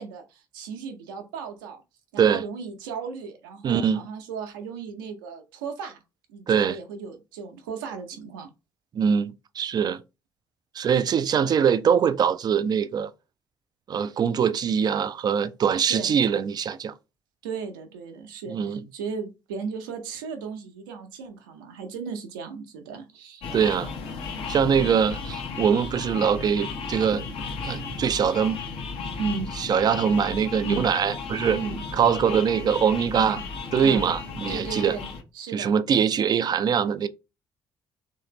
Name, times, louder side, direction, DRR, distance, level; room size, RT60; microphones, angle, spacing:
voice 1, 0.0-1.8 2.1-6.0 6.3-8.5 15.8-16.2 17.4-23.4 29.2-29.5 30.6-30.9 31.5-31.8 33.1-33.4 33.8-34.1 34.5-35.1 35.3-35.7, right 5 dB, 70° right, 0.7 m, -35 dB
voice 2, 3.6-4.0 6.5-6.8 8.9-10.0 10.7-13.1 13.9-16.9 18.5-18.8 23.5-23.9 24.5-27.3 27.6-28.6 29.6-31.6 32.0-33.4 33.7-35.0 35.5-37.1, right 7 dB, 35° right, 0.4 m, -23 dB
sound 1, 23.4-35.2, left 4 dB, 55° left, 0.8 m, -34 dB
3.2 x 2.6 x 3.0 m
figure-of-eight pair, 45°, 12 cm